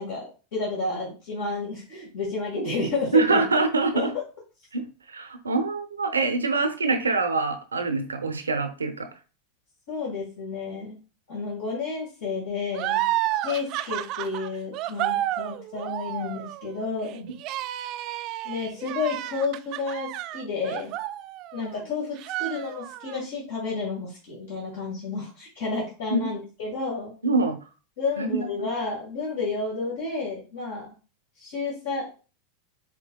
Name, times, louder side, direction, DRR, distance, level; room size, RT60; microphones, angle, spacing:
voice 1, 0.0-3.4 3.9-4.1 9.9-11.0 11.3-13.1 13.4-17.2 18.4-20.9 21.5-27.2 28.0-30.9 31.4-32.1, left 4 dB, 70° left, -5 dB, 1.7 m, -31 dB
voice 2, 3.1-4.1 4.7-9.1 17.1-17.3 26.1-26.2 27.2-27.6 28.2-28.7, right 3 dB, 90° right, 7 dB, 0.6 m, -25 dB
sound 1, 12.7-21.8 22.2-23.2, right 14 dB, 50° right, 0.3 m, -31 dB
5.2 x 3.3 x 2.2 m, 0.34 s
hypercardioid pair, 90°, 0 cm